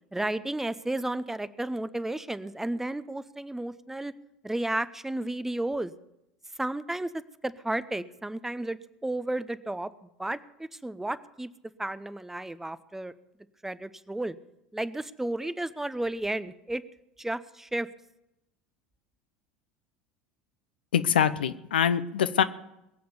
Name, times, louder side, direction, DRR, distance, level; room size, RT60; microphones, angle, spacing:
voice 1, 0.1-4.1 4.4-5.9 6.6-9.9 10.2-11.5 11.8-13.1 13.6-14.3 14.7-16.8 17.2-17.9, right 1 dB, 5° right, 15 dB, 0.7 m, -32 dB
voice 2, 20.9-22.4, left 8 dB, 75° left, 12 dB, 0.7 m, -24 dB
21.5 x 7.7 x 6.9 m, 0.87 s
figure-of-eight pair, 75°, 5 cm